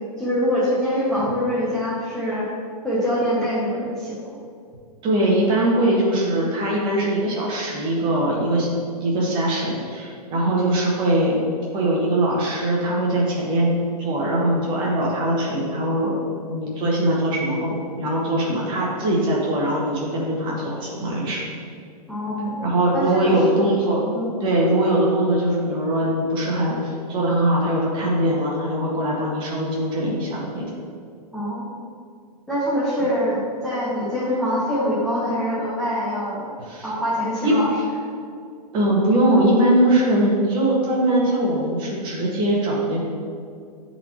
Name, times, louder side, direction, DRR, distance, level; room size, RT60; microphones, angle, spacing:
voice 1, 0.2-2.5 2.8-4.2 22.1-22.6 22.9-23.7 24.1-24.3 31.3-31.6 32.5-36.5 36.8-37.7, equal, 5° left, -10 dB, 0.9 m, -24 dB
voice 2, 5.0-8.7 9.0-11.4 11.7-13.7 14.0-16.1 16.5-21.4 22.6-30.6 36.7-36.9 37.4-37.6 38.7-43.0, right 1 dB, 25° right, -4 dB, 1.5 m, -21 dB
9.6 x 4.1 x 3.1 m, 2.3 s
hypercardioid pair, 155°, 21 cm